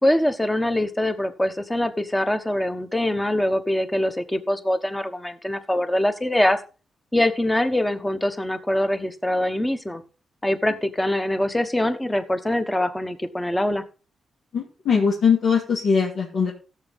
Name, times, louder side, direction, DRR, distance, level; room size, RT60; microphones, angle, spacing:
voice 1, 0.0-6.6 7.1-10.0 10.4-13.8, left 1 dB, 10° left, 9 dB, 1.2 m, -23 dB
voice 2, 14.5-16.5, left 6 dB, 70° left, -4 dB, 3.0 m, -21 dB
15.5 x 7.3 x 4.1 m, 0.33 s
cardioid pair, 120°, 0 cm